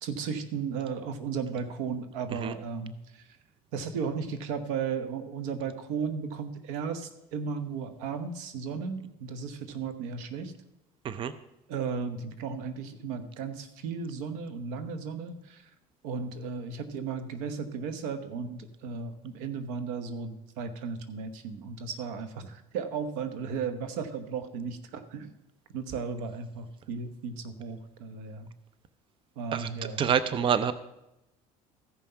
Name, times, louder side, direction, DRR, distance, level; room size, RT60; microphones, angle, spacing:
voice 1, 0.0-3.2 3.7-10.5 11.7-15.7 16.0-25.3 25.7-28.5 29.4-30.0, right 5 dB, 85° right, 10 dB, 1.1 m, -35 dB
voice 2, 30.0-30.7, right 8 dB, 35° right, 13 dB, 0.6 m, -26 dB
14.5 x 5.6 x 5.7 m, 0.90 s
supercardioid pair, 100°, 14 cm